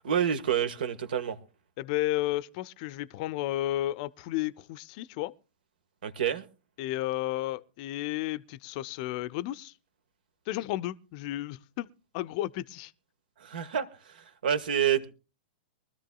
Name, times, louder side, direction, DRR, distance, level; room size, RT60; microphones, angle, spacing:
voice 1, 0.0-1.4 6.0-6.4 13.4-15.1, right 9 dB, 65° right, 1.5 m, -28 dB
voice 2, 1.8-5.3 6.8-9.7 10.5-11.9 12.1-12.9, left 15 dB, 45° left, 0.6 m, -32 dB
23.5 x 13.5 x 2.3 m
figure-of-eight pair, 105°, 5 cm